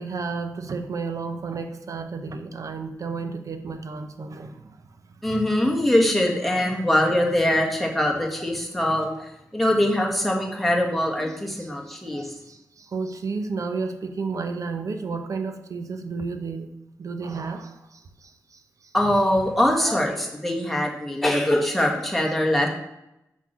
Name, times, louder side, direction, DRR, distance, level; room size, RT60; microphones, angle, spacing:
voice 1, 0.0-5.1 11.3-16.7 17.0-18.9, right 4 dB, 55° right, 7 dB, 0.8 m, -32 dB
voice 2, 5.2-12.2 18.9-22.7, left 1 dB, ahead, -1 dB, 1.5 m, -22 dB
5.8 x 4.5 x 6.0 m, 0.85 s
wide cardioid pair, 95°, 7 cm